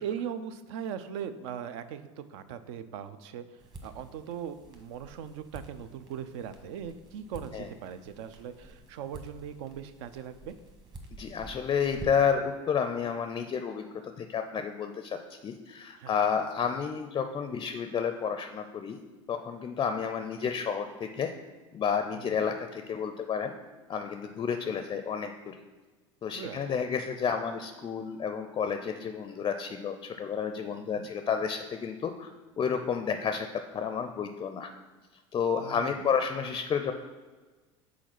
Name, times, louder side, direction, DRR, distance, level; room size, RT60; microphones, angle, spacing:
voice 1, 0.0-10.5 16.0-16.2 22.3-22.4 26.3-26.7 30.8-31.1 35.6-36.1, right 8 dB, 70° right, 11 dB, 0.5 m, -39 dB
sound 1, 3.6-12.4, right 2 dB, 25° right, 1.2 m, -49 dB
voice 2, 11.2-19.0 19.3-21.3 21.7-23.5 23.9-25.6 26.2-32.3 32.6-33.5 33.7-34.7 35.3-36.9, left 6 dB, 30° left, 7 dB, 0.4 m, -31 dB
4.9 x 4.1 x 5.9 m, 1.3 s
hypercardioid pair, 80°, 16 cm